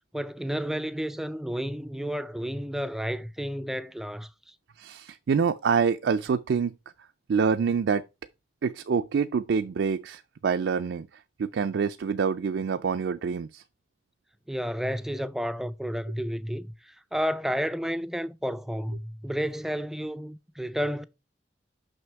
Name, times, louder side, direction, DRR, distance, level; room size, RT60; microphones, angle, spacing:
voice 1, 0.1-4.6 14.5-21.0, equal, ahead, 0.3 m, -31 dB
voice 2, 4.8-6.8 7.3-8.0 8.6-11.1 11.4-13.6, right 6 dB, 85° right, 0.4 m, -26 dB
6.2 x 5.7 x 4.5 m
head